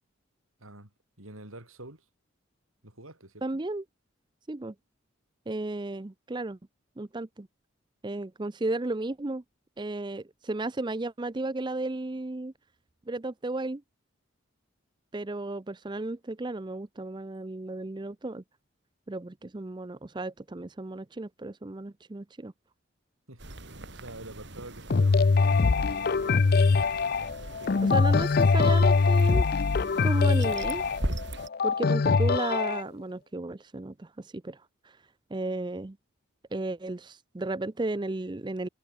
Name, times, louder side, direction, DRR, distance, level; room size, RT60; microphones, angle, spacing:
voice 1, 0.6-0.9 1.2-2.0 2.8-3.4 23.3-23.4 23.7-27.0 27.6-28.1, right 1 dB, 85° right, 8.0 m, -47 dB
voice 2, 3.4-3.8 4.5-4.7 5.5-6.6 7.0-7.5 8.0-9.4 9.8-12.5 13.1-13.8 15.1-18.4 19.1-22.5 27.8-29.5 30.0-30.8 31.6-35.0 35.3-36.0 36.5-38.7, right 2 dB, 20° right, 0.5 m, -34 dB
sound 1, 23.4-31.5, right 1 dB, 55° right, 3.6 m, -40 dB
sound 2, 24.9-32.8, left 4 dB, 45° left, 0.5 m, -23 dB
head